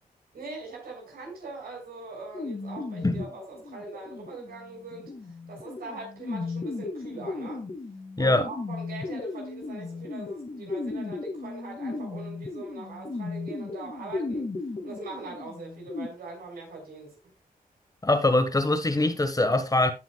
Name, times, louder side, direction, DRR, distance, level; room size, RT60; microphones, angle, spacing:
voice 1, 0.3-5.1 5.5-7.6 8.2-14.5 14.8-17.1, right 3 dB, 85° right, 4.8 m, -42 dB
sound 1, 2.3-16.1, left 3 dB, 40° left, 2.1 m, -36 dB
voice 2, 18.0-19.9, left 2 dB, 25° left, 1.4 m, -23 dB
15.5 x 5.7 x 2.3 m
cardioid pair, 75°, 15 cm